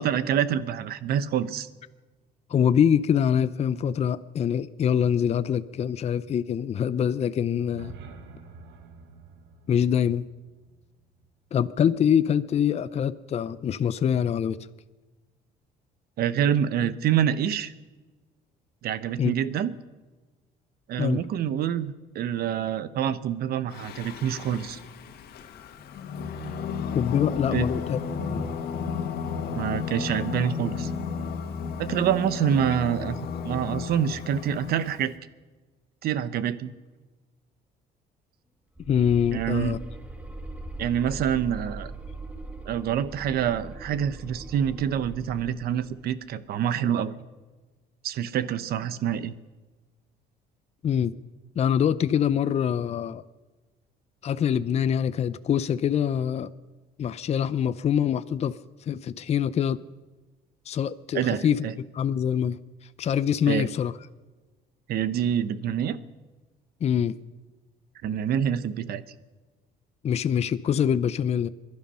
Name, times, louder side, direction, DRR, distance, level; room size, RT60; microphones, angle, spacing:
voice 1, 0.0-1.7 16.2-17.7 18.8-19.7 20.9-24.8 27.5-27.7 29.5-30.9 31.8-33.2 33.4-35.1 36.0-36.7 39.3-39.8 40.8-41.9 42.7-47.1 48.0-49.3 61.1-61.7 63.5-63.7 64.9-66.0 68.0-69.0, right 9 dB, 65° right, 14 dB, 0.9 m, -26 dB
voice 2, 2.5-7.9 9.7-10.2 11.5-14.6 19.2-19.3 21.0-21.2 26.9-28.0 28.3-28.5 38.9-39.8 50.8-51.1 51.6-53.2 54.2-56.5 57.0-58.5 58.9-59.8 60.7-61.7 61.9-62.6 63.0-63.9 66.8-67.2 70.0-71.5, left 8 dB, 40° left, 13 dB, 0.6 m, -24 dB
sound 1, 7.5-11.6, right 4 dB, 90° right, 1.5 m, -48 dB
Singing, 23.7-35.0, left 6 dB, 70° left, 1.8 m, -33 dB
sound 2, 38.8-46.0, right 2 dB, 10° right, 1.5 m, -40 dB
21.5 x 12.0 x 5.7 m, 1.3 s
cardioid pair, 110°, 17 cm